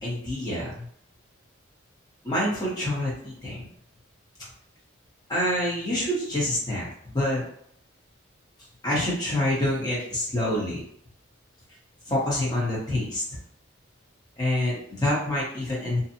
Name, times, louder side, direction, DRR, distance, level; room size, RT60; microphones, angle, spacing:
voice 1, 0.0-0.8 2.2-3.6 5.3-7.4 8.8-10.8 12.1-13.2 14.4-16.0, left 1 dB, 20° left, -6 dB, 0.9 m, -27 dB
2.7 x 2.3 x 2.7 m, 0.66 s
head